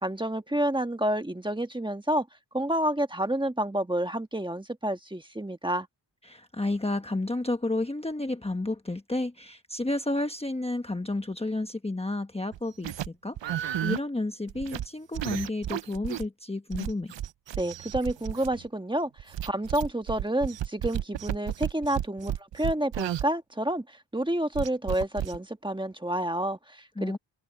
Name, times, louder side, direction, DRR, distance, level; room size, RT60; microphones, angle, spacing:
voice 1, 0.0-2.3 2.5-5.9 17.6-27.2, right 1 dB, 10° right, 1.3 m, -29 dB
voice 2, 6.2-17.1 27.0-27.2, left 2 dB, 15° left, 1.1 m, -31 dB
sound 1, 12.5-13.1 13.4-14.0 14.5-14.9 15.1-16.2 16.7-18.7 19.2-23.2 24.5-25.4, right 11 dB, 80° right, 0.7 m, -33 dB
wide cardioid pair, 120°, 44 cm